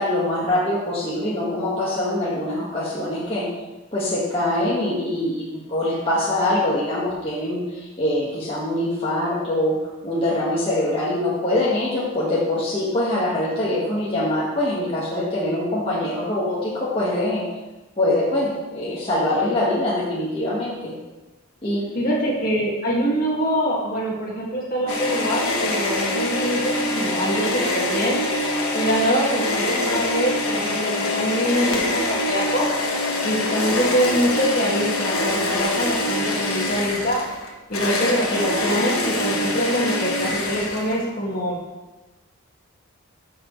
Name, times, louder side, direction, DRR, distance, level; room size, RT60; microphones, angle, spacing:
voice 1, 0.0-3.5 3.9-9.8 10.0-17.4 18.0-20.9 21.6-21.9, left 1 dB, 25° left, -8 dB, 1.7 m, -23 dB
voice 2, 21.9-28.2 28.7-32.7 33.2-37.2 37.7-41.6, equal, 40° left, -3 dB, 2.1 m, -24 dB
sound 1, 24.9-41.1, left 2 dB, 85° left, 1.6 m, -24 dB
14.0 x 6.0 x 3.2 m, 1.1 s
head